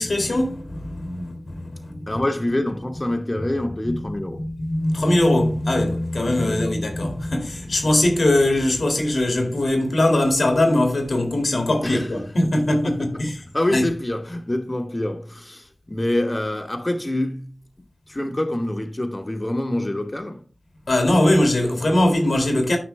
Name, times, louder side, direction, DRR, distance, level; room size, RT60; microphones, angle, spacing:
voice 1, 0.0-2.2 3.8-4.0 4.3-13.4 13.7-13.9 20.9-22.8, left 1 dB, 85° left, 2.0 m, -21 dB
voice 2, 2.1-4.5 6.4-6.6 11.8-13.3 13.5-17.6 18.1-20.4, left 1 dB, 30° left, 1.1 m, -26 dB
9.7 x 5.9 x 3.3 m
wide cardioid pair, 55°, 0 cm